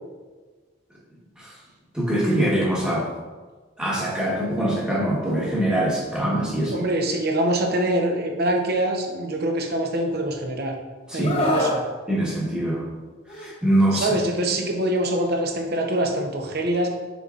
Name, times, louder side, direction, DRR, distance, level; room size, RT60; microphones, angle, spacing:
voice 1, 1.9-3.1 3.8-6.8 11.1-11.3 12.1-12.9 13.3-14.1, right 1 dB, 5° right, -5 dB, 1.1 m, -23 dB
voice 2, 6.7-10.7 11.1-11.8 13.9-16.9, right 1 dB, 50° right, 3 dB, 0.8 m, -24 dB
Screaming, 11.2-11.8 13.3-13.5, left 1 dB, 30° left, 0.9 m, -23 dB
7.1 x 5.4 x 2.4 m, 1.4 s
head